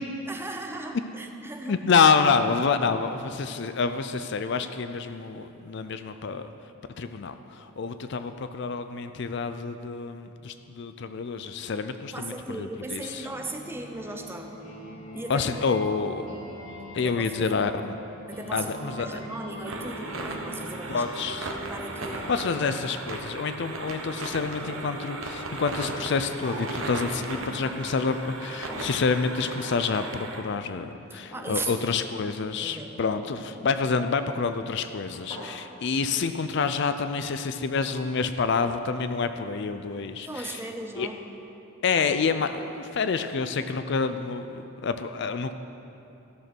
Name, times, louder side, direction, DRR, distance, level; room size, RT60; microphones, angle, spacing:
voice 1, 0.3-2.1 12.1-14.6 15.1-15.6 17.0-17.7 18.3-22.3 31.1-32.1 32.6-33.0 40.2-41.2, right 2 dB, 10° right, 3 dB, 0.7 m, -37 dB
voice 2, 1.7-6.5 7.0-13.2 15.3-16.3 16.9-17.9 18.5-19.2 20.9-21.5 22.3-40.6 41.0-41.1 41.8-45.5, left 5 dB, 55° left, 10 dB, 0.4 m, -28 dB
sound 1, 13.0-22.4, right 1 dB, 75° left, 2.3 m, -43 dB
sound 2, 19.6-30.4, right 2 dB, 70° right, 1.0 m, -36 dB
sound 3, 22.0-23.2 23.5-24.9 25.4-28.4 28.7-29.0 29.6-29.8 30.1-30.5 30.9-32.5 33.9-34.3 34.8-34.9 35.1-35.5, equal, 30° left, 3.2 m, -45 dB
14.0 x 6.6 x 6.0 m, 2.8 s
head